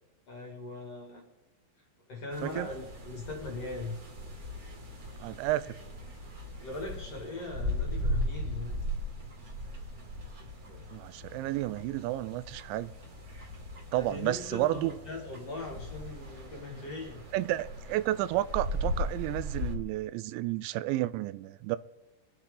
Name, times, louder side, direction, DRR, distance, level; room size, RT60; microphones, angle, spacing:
voice 1, 0.3-1.2 2.1-4.0 6.6-8.8 10.4-10.9 13.9-17.2, left 2 dB, 45° left, 2.4 m, -40 dB
sound 1, 2.3-19.7, left 1 dB, 40° right, 1.3 m, -38 dB
voice 2, 5.2-5.8 10.9-12.9 13.9-14.9 17.3-21.8, right 15 dB, 85° right, 2.9 m, -31 dB
25.5 x 9.2 x 3.8 m
omnidirectional pair, 5.2 m